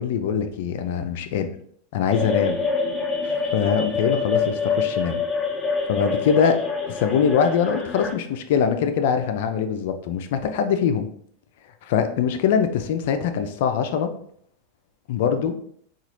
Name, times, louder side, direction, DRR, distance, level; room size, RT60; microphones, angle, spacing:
voice 1, 0.0-1.5 1.9-2.6 3.2-5.2 5.9-6.6 6.9-11.1 11.9-14.1 15.1-15.5, left 7 dB, 65° left, 8 dB, 0.4 m, -23 dB
sound 1, 2.1-8.1, left 4 dB, 20° left, 0.7 m, -26 dB
3.8 x 2.4 x 3.0 m, 0.63 s
hypercardioid pair, 100°, 0 cm